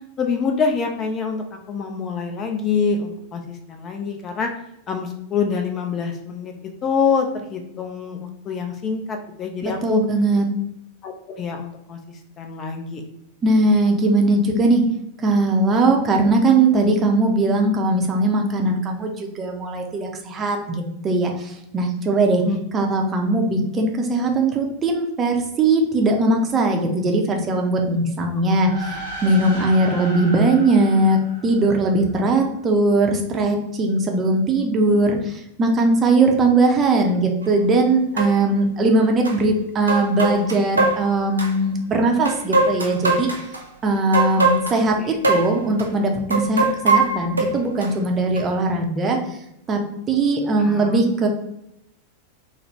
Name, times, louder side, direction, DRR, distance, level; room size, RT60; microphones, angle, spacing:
voice 1, 0.2-4.5 4.9-6.5 6.8-10.0 11.0-13.0 22.4-22.6 44.4-44.5 45.0-45.2 50.6-51.0, left 5 dB, 30° left, 4 dB, 0.4 m, -26 dB
voice 2, 9.6-10.5 13.4-14.8 15.2-22.4 22.7-31.2 31.4-43.3 43.8-49.2 49.7-49.8 50.1-51.3, right 2 dB, 25° right, 2 dB, 0.5 m, -20 dB
sound 1, 28.5-32.2, right 2 dB, 70° left, 1.0 m, -35 dB
sound 2, 37.4-37.5 38.2-38.3 39.2-39.3 39.9-41.5 42.2-43.6 44.1-44.8 45.2-45.5 45.8-45.9 46.3-47.9 48.4-48.5, right 3 dB, 80° right, 0.5 m, -20 dB
3.5 x 2.0 x 3.0 m, 0.82 s
figure-of-eight pair, 90°, 0 cm